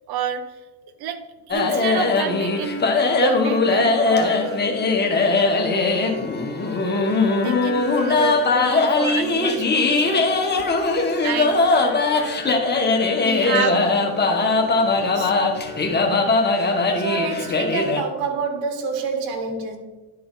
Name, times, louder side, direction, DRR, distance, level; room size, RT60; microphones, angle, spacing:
voice 1, 0.1-0.4 1.0-1.2 1.5-4.6 7.4-10.2 11.2-11.6 13.2-13.9 15.0-15.3, right 7 dB, 55° right, 9 dB, 1.0 m, -28 dB
sound 1, 1.5-18.0, left 3 dB, 25° left, 1.2 m, -20 dB
voice 2, 16.9-19.8, right 4 dB, 75° right, 4 dB, 1.6 m, -27 dB
11.5 x 4.3 x 4.0 m, 1.2 s
supercardioid pair, 105°, 43 cm